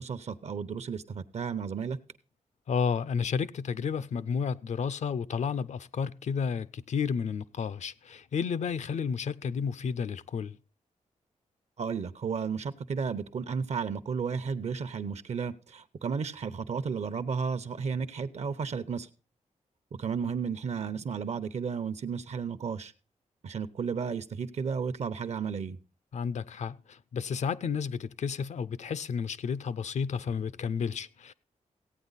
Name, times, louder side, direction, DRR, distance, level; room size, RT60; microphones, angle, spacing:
voice 1, 0.0-2.0 11.8-19.1 20.0-22.9 23.4-25.8, right 6 dB, 60° right, 0.8 m, -33 dB
voice 2, 2.7-10.6 26.1-31.3, left 6 dB, 65° left, 0.5 m, -32 dB
16.0 x 9.0 x 4.1 m
wide cardioid pair, 130°, 13 cm